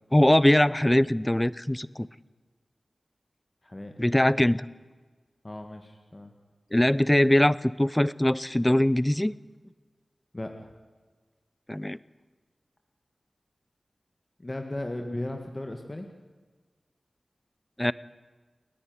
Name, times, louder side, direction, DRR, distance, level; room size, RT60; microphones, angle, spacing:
voice 1, 0.1-2.1 4.0-4.6 6.7-9.3 11.7-12.0 17.8-17.9, left 1 dB, 15° left, 19 dB, 0.6 m, -22 dB
voice 2, 3.6-3.9 5.4-6.3 10.3-10.7 14.4-16.1, left 1 dB, 30° left, 4 dB, 1.7 m, -36 dB
29.0 x 10.0 x 9.5 m, 1.4 s
wide cardioid pair, 50°, 0 cm